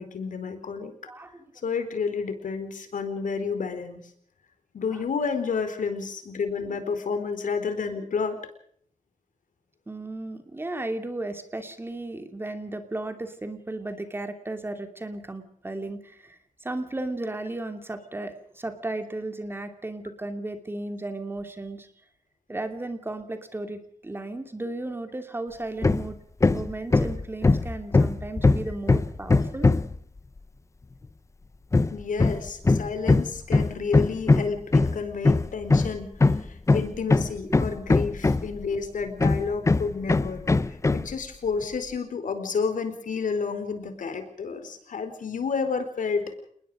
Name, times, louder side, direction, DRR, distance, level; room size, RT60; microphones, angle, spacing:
voice 1, 0.0-0.9 1.6-4.0 4.7-8.4 31.9-46.2, left 5 dB, 80° left, 9 dB, 4.4 m, -30 dB
voice 2, 1.1-1.4 4.9-5.0 9.9-21.9 22.5-26.2 26.5-29.7, right 2 dB, 15° right, 7 dB, 2.8 m, -35 dB
Hammer, 25.8-26.1 26.4-30.0 31.7-38.7 39.2-41.1, left 3 dB, 20° left, 0.9 m, -21 dB
29.0 x 20.5 x 5.1 m, 0.63 s
wide cardioid pair, 175°, 13 cm